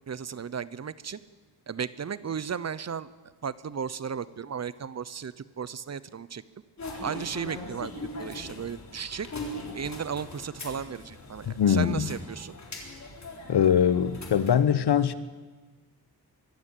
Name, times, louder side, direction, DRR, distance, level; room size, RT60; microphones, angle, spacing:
voice 1, 0.1-1.2 1.7-3.1 3.4-6.4 7.0-7.9 8.2-9.3 9.7-12.5, right 7 dB, 45° right, 17 dB, 0.7 m, -35 dB
sound 1, 6.8-14.5, left 2 dB, 45° left, 3.9 m, -41 dB
voice 2, 11.5-12.1 13.5-15.1, left 8 dB, 90° left, 14 dB, 1.1 m, -22 dB
23.0 x 15.0 x 9.1 m, 1.3 s
wide cardioid pair, 175°, 38 cm